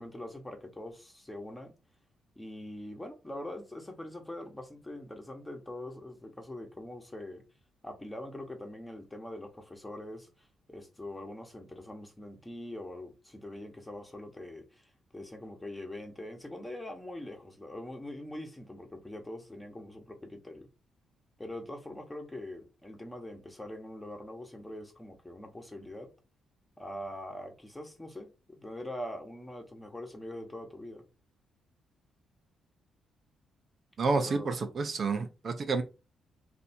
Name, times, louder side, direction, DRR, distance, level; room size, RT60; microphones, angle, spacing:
voice 1, 0.0-1.7 2.4-7.4 7.8-20.7 21.4-26.1 26.8-31.0 34.2-34.5, left 1 dB, 10° left, 1.2 m, -43 dB
voice 2, 34.0-35.8, right 4 dB, 50° right, 0.6 m, -29 dB
3.3 x 2.7 x 4.2 m
cardioid pair, 90°, 0 cm